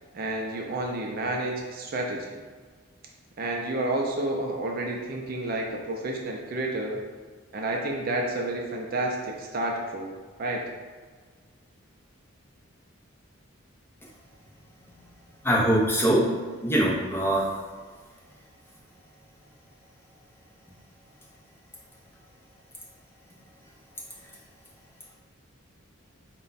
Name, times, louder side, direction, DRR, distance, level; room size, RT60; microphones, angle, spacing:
voice 1, 0.1-2.4 3.4-7.0 7.5-10.1 10.4-10.6, right 2 dB, 45° right, 0 dB, 0.4 m, -30 dB
voice 2, 15.4-16.3 16.6-17.5, right 1 dB, 10° left, -5 dB, 0.6 m, -22 dB
4.2 x 2.2 x 3.9 m, 1.5 s
head